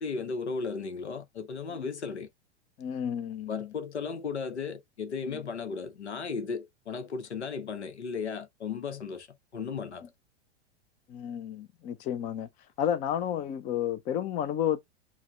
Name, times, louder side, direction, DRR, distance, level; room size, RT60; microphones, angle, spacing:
voice 1, 0.0-2.3 3.5-9.3 9.5-10.1, left 5 dB, 80° left, 0.8 m, -35 dB
voice 2, 2.8-3.7 5.2-5.4 11.1-12.5 12.8-14.8, left 9 dB, 25° left, 0.4 m, -31 dB
4.8 x 2.1 x 3.3 m
figure-of-eight pair, 95°, 33 cm